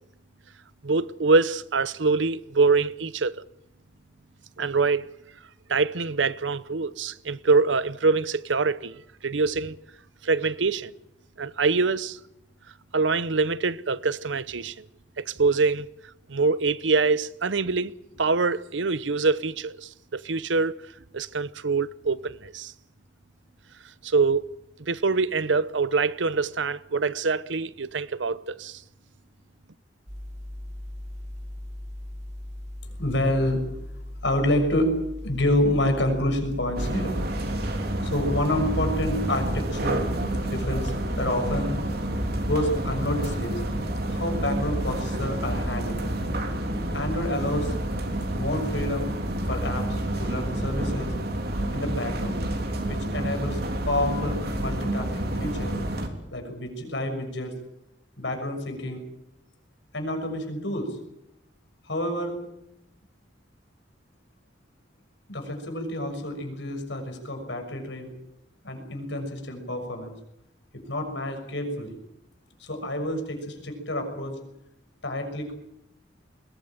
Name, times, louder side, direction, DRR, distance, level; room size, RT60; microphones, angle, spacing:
voice 1, 0.8-3.4 4.6-5.1 5.7-9.8 10.2-10.9 11.4-12.2 12.9-14.8 15.2-15.9 16.3-17.9 18.2-20.7 21.1-22.7 24.0-24.5 24.8-28.8, right 4 dB, 85° right, 0.8 m, -24 dB
sound 1, 30.1-37.5, left 1 dB, 40° right, 4.2 m, -38 dB
voice 2, 33.0-33.6 34.2-35.0 35.2-37.1 37.6-37.7 38.0-40.0 40.4-41.7 42.4-43.6 44.1-46.1 46.9-47.7 48.3-49.1 49.5-51.1 51.7-52.4 52.9-53.6 53.9-55.8 56.3-57.5 58.2-59.0 59.9-61.0 61.8-62.4 65.3-68.1 68.6-70.2 70.7-72.0 72.6-74.4 75.0-75.5, left 1 dB, 75° left, 6.5 m, -28 dB
sound 2, 36.8-56.1, right 1 dB, 60° right, 3.4 m, -29 dB
21.5 x 19.5 x 9.0 m
head